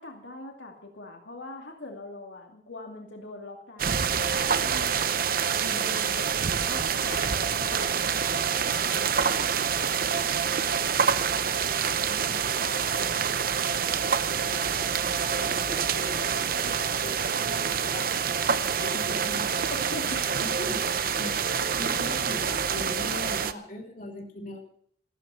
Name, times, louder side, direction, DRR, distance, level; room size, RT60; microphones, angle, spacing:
voice 1, 0.0-5.3 5.8-6.3 6.7-9.7 19.7-20.2 21.8-22.1, left 2 dB, 85° left, 1 dB, 2.5 m, -42 dB
sound 1, 3.8-23.5, right 7 dB, 50° right, 0.7 m, -27 dB
voice 2, 5.6-6.0 6.5-6.7 11.6-13.8 14.3-18.1 18.4-19.6 20.1-24.6, left 1 dB, 45° left, 0 dB, 3.2 m, -41 dB
14.5 x 14.0 x 5.7 m, 0.63 s
head